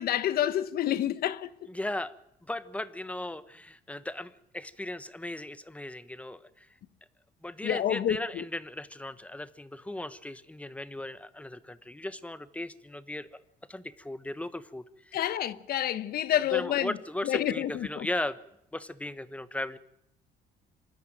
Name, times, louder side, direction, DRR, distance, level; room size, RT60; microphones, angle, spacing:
voice 1, 0.0-1.7 7.6-8.4 15.1-17.0 17.2-18.1, left 11 dB, 65° left, 1.1 m, -29 dB
voice 2, 1.7-2.1 2.4-6.7 7.4-13.3 13.7-15.2 16.5-18.4 18.7-19.8, left 1 dB, 10° left, 1.1 m, -37 dB
26.5 x 13.0 x 9.1 m
cardioid pair, 110°, 17 cm